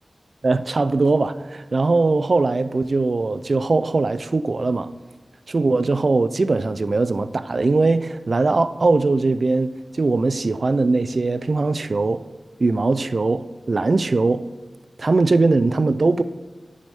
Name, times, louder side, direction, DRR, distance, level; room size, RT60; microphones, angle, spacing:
voice 1, 0.4-4.9 5.5-12.2 12.6-14.4 15.0-16.2, right 3 dB, 55° right, 0.3 m, -20 dB
9.5 x 6.2 x 3.5 m
wide cardioid pair, 90°, 0 cm